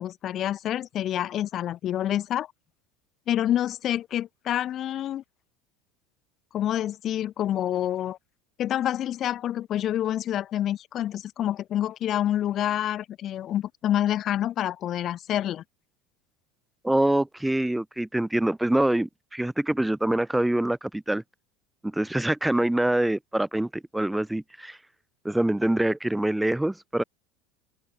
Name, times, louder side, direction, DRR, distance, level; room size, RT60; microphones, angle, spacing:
voice 1, 0.0-2.5 3.3-5.2 6.5-8.2 8.6-15.6, left 11 dB, 45° left, 7.9 m, -27 dB
voice 2, 16.8-21.2 21.8-24.8 25.2-27.0, right 1 dB, 5° right, 7.4 m, -25 dB
hypercardioid pair, 95°, 0 cm